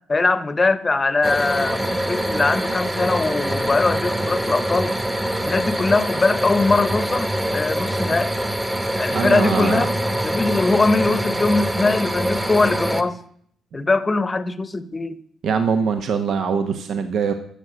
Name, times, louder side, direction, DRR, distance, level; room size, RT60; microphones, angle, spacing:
voice 1, 0.1-5.0 5.5-8.3 9.0-9.9 10.2-13.2 13.7-15.2, left 3 dB, 25° left, 0.9 m, -21 dB
sound 1, 1.2-13.0, right 1 dB, 10° right, 1.1 m, -24 dB
voice 2, 9.1-9.9 15.4-17.3, right 6 dB, 65° right, 1.0 m, -22 dB
13.5 x 6.7 x 7.9 m
cardioid pair, 90°, 0 cm